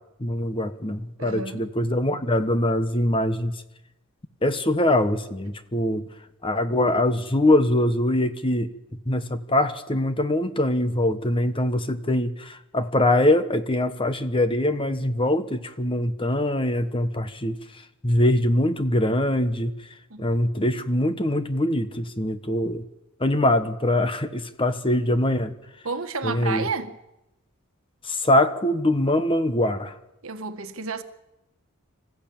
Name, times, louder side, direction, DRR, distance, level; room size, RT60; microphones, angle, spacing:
voice 1, 0.2-3.5 4.4-6.0 6.4-8.7 9.1-17.6 18.0-19.7 20.2-22.8 23.2-25.5 26.2-26.7 28.0-29.9, left 1 dB, 25° left, 1.1 m, -23 dB
voice 2, 1.2-1.6 20.1-20.2 25.8-27.0 30.2-31.0, right 4 dB, 65° right, 1.6 m, -31 dB
26.0 x 14.5 x 8.9 m
head